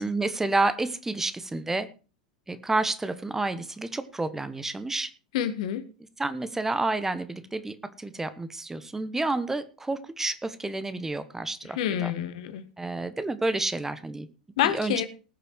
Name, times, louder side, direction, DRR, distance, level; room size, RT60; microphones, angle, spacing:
voice 1, 0.0-1.9 2.5-5.1 6.2-12.1 12.8-14.3 14.6-14.9, right 2 dB, 10° right, 12 dB, 1.2 m, -29 dB
voice 2, 5.3-5.8 11.7-12.6 14.6-15.1, left 11 dB, 60° left, 12 dB, 1.5 m, -27 dB
19.5 x 6.8 x 4.6 m, 0.34 s
figure-of-eight pair, 90°, 4 cm